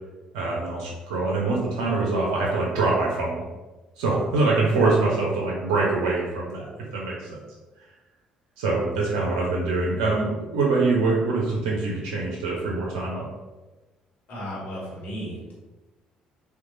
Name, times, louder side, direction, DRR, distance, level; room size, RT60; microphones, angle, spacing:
voice 1, 0.3-3.4 4.0-6.7 6.9-7.3 8.6-13.3, right 3 dB, 75° right, -3 dB, 0.5 m, -24 dB
voice 2, 14.3-15.5, equal, 60° left, -6 dB, 1.1 m, -34 dB
2.9 x 2.2 x 2.5 m, 1.2 s
hypercardioid pair, 50°, 3 cm